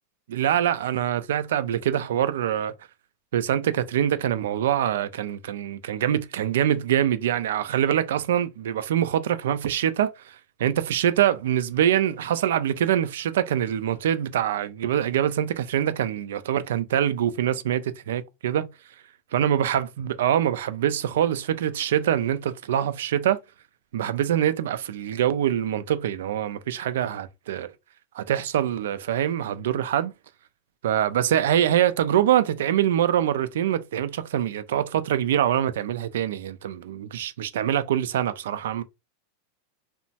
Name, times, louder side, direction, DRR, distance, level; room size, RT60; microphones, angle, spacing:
voice 1, 0.3-2.7 3.3-18.7 19.3-23.4 23.9-27.7 28.1-30.1 30.8-38.8, right 10 dB, 80° right, 0.3 m, -24 dB
3.0 x 2.1 x 2.7 m
supercardioid pair, 150°, 0 cm